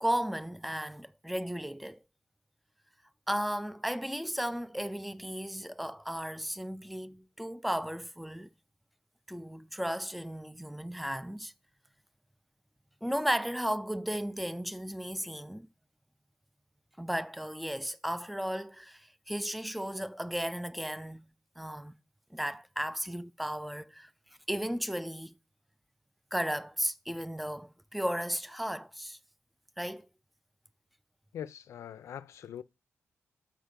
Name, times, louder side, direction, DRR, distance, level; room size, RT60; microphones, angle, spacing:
voice 1, 0.0-2.0 3.3-8.5 9.3-11.5 13.0-15.7 17.0-21.3 21.6-22.0 22.3-24.1 24.5-25.3 26.3-29.2 29.8-30.1, equal, ahead, 0.3 m, -35 dB
voice 2, 31.3-32.6, left 9 dB, 80° left, 0.4 m, -42 dB
7.5 x 4.5 x 5.1 m
cardioid pair, 115°, 5 cm